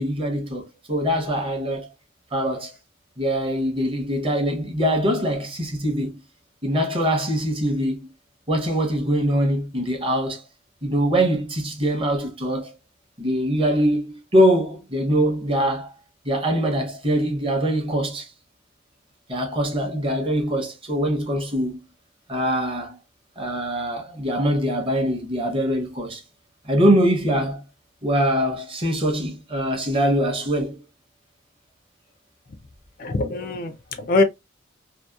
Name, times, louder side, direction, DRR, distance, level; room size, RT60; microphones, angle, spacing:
voice 1, 0.0-1.9 2.3-2.7 3.2-6.2 6.6-8.1 8.5-10.4 10.8-12.8 13.2-15.9 16.2-18.3 19.3-21.8 22.3-23.0 23.4-26.2 26.6-27.6 28.0-30.7, equal, 30° right, 0.7 m, -23 dB
voice 2, 33.0-34.2, left 3 dB, 45° left, 0.4 m, -23 dB
2.7 x 2.0 x 2.2 m
head